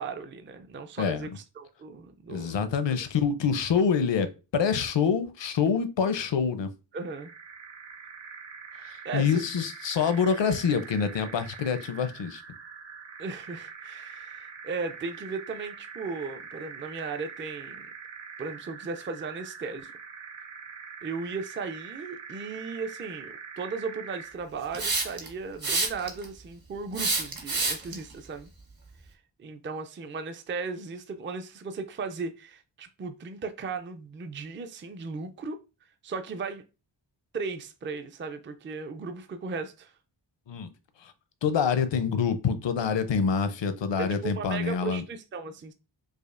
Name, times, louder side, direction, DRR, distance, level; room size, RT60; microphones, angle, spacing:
voice 1, 0.0-2.6 6.9-7.3 9.0-9.4 13.2-17.9 18.4-19.9 21.0-28.5 29.4-35.6 36.0-36.6 37.3-39.9 44.0-45.7, right 4 dB, 30° right, 0.4 m, -36 dB
voice 2, 1.0-1.3 2.3-6.7 8.8-12.4 40.5-40.7 41.0-41.1 41.4-45.0, left 6 dB, 70° left, 0.6 m, -26 dB
sound 1, 7.0-24.5, right 5 dB, 75° right, 0.9 m, -44 dB
Hiss, 24.7-25.3 25.6-26.2 26.9-27.9, right 3 dB, 50° right, 1.1 m, -27 dB
4.9 x 2.3 x 2.4 m
wide cardioid pair, 80°, 45 cm